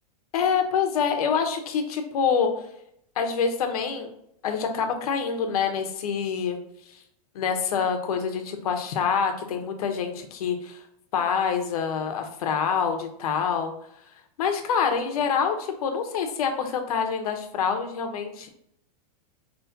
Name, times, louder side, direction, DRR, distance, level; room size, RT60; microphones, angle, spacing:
voice 1, 0.3-2.5 3.2-4.1 4.4-6.6 6.9-7.0 7.3-10.8 11.1-13.7 14.4-18.5, left 6 dB, 70° left, 5 dB, 1.0 m, -26 dB
5.8 x 3.1 x 2.7 m, 0.74 s
supercardioid pair, 150°, 20 cm